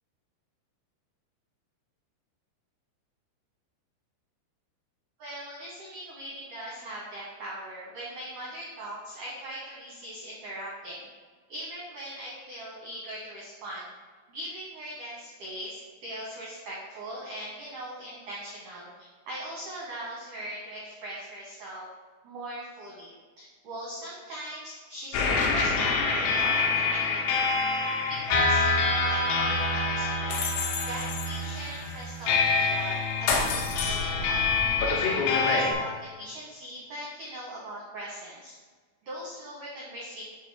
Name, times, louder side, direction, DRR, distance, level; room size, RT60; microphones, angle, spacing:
voice 1, 5.2-11.0 11.5-13.9 14.3-18.9 19.2-21.9 22.2-30.4 30.8-38.5 39.0-40.2, right 1 dB, 80° right, -5 dB, 1.8 m, -40 dB
sound 1, 25.1-35.7, left 4 dB, 75° left, 3.1 m, -26 dB
7.8 x 3.8 x 4.9 m, 1.5 s
omnidirectional pair, 5.6 m